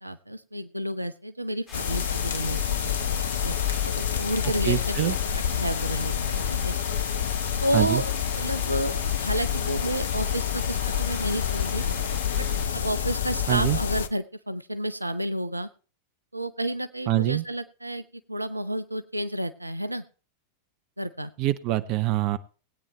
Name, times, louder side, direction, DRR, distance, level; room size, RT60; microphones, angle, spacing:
voice 1, 0.0-2.9 3.4-3.6 3.8-5.2 5.5-6.8 7.6-11.8 12.4-12.5 12.7-15.7 16.3-20.0 21.0-21.3, right 1 dB, 85° right, 12 dB, 0.7 m, -31 dB
sound 1, 1.7-14.1, left 8 dB, 65° left, 0.8 m, -28 dB
sound 2, 1.7-12.7, left 3 dB, 25° left, 4.3 m, -44 dB
voice 2, 4.6-5.2 7.7-8.0 13.5-13.8 17.1-17.4 21.4-22.4, right 16 dB, 40° right, 13 dB, 0.7 m, -24 dB
20.0 x 8.9 x 3.2 m, 0.36 s
figure-of-eight pair, 90°, 0 cm